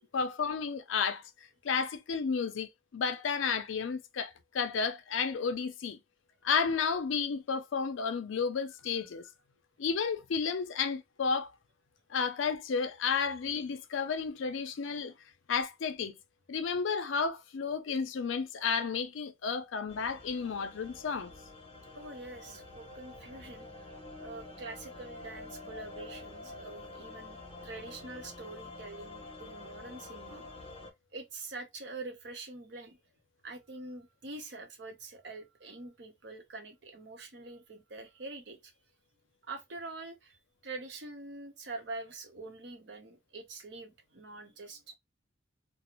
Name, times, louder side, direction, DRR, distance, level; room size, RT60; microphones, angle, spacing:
voice 1, 0.1-1.3 1.6-6.0 6.4-9.3 9.8-11.5 12.1-15.1 15.5-16.2 16.5-21.3, left 5 dB, 80° left, 0.4 m, -32 dB
sound 1, 19.9-30.9, left 2 dB, 30° left, 0.6 m, -48 dB
voice 2, 21.9-23.9 24.2-30.5 31.1-33.0 33.4-38.7 39.4-40.4 40.6-44.9, right 3 dB, 60° right, 0.7 m, -45 dB
2.4 x 2.0 x 2.9 m
head